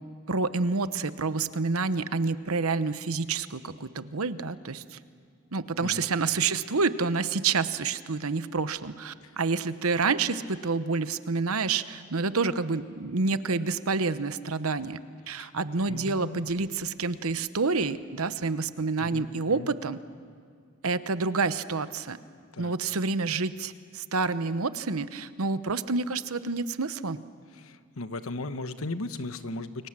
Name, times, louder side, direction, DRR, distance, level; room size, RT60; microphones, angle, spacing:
voice 1, 0.3-5.0 5.5-15.0 15.3-20.0 20.8-22.2 22.6-27.2, right 4 dB, 90° right, 13 dB, 1.0 m, -28 dB
voice 2, 15.9-16.4 19.0-19.7 22.5-22.7 27.5-29.9, left 2 dB, 80° left, 10 dB, 1.2 m, -37 dB
29.5 x 24.0 x 7.6 m, 2.3 s
head